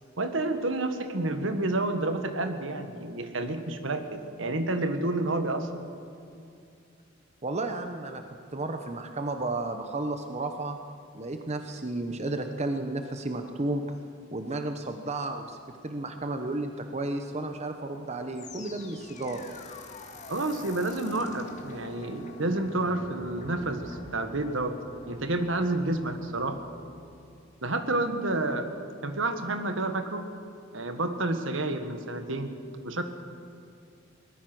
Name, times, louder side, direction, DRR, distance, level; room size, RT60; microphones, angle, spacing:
voice 1, 0.2-5.7 20.3-24.8 25.1-26.6 27.6-28.7 29.0-30.3 30.7-32.5 32.8-33.0, right 2 dB, 70° right, 8 dB, 1.6 m, -29 dB
voice 2, 7.4-8.2 8.5-10.8 11.1-13.8 14.3-15.6 15.8-19.5, right 2 dB, 35° right, 6 dB, 1.0 m, -32 dB
sound 1, 18.3-27.5, left 2 dB, 40° left, 1.9 m, -46 dB
22.0 x 19.5 x 6.3 m, 2.5 s
head